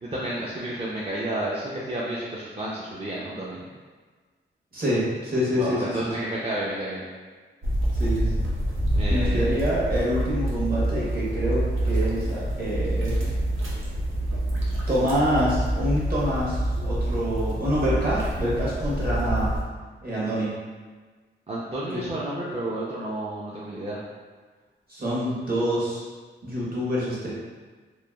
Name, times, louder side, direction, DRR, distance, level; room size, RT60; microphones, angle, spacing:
voice 1, 0.0-3.7 5.5-7.1 8.9-9.5 21.5-24.0, right 1 dB, 30° right, -7 dB, 0.4 m, -31 dB
voice 2, 4.7-6.0 7.9-8.4 9.1-13.2 14.9-19.5 20.0-20.5 21.9-22.0 24.9-26.0 26.4-27.3, equal, 50° right, -7 dB, 1.1 m, -26 dB
sound 1, 7.6-19.6, right 1 dB, 90° right, 0.5 m, -26 dB
3.0 x 2.2 x 2.3 m, 1.4 s
cardioid pair, 65°, 20 cm